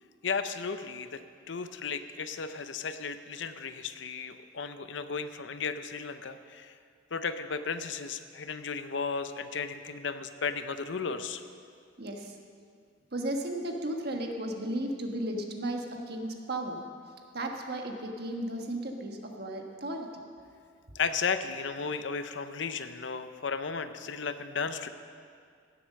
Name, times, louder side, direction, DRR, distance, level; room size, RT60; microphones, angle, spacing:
voice 1, 0.2-1.2 1.5-6.7 7.1-11.4 20.9-24.9, left 5 dB, 65° left, 10 dB, 0.7 m, -34 dB
voice 2, 12.0-12.4 13.1-16.8 17.3-20.2, right 1 dB, 55° right, 2 dB, 1.4 m, -35 dB
17.0 x 7.9 x 6.5 m, 2.2 s
head